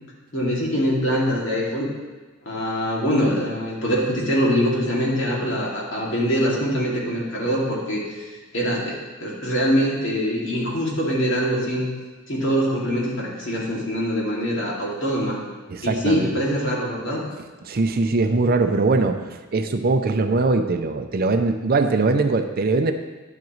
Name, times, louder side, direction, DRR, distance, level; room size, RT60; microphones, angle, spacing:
voice 1, 0.3-1.9 2.4-8.3 8.5-11.9 12.3-15.4 15.8-17.3, equal, 65° left, -5 dB, 2.4 m, -23 dB
voice 2, 15.7-16.3 17.6-22.9, right 3 dB, 50° right, 7 dB, 0.5 m, -21 dB
10.5 x 7.3 x 3.1 m, 1.3 s
head